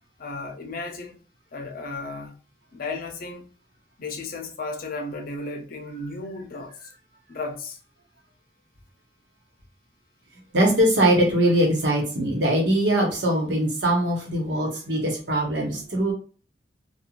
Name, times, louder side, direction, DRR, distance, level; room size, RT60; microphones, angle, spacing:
voice 1, 0.2-1.2 1.5-2.4 2.7-3.5 4.0-6.9 7.3-7.8, left 3 dB, 55° left, 0.6 m, -34 dB
voice 2, 10.5-16.1, right 1 dB, 85° right, 1.1 m, -22 dB
3.0 x 2.3 x 2.4 m
head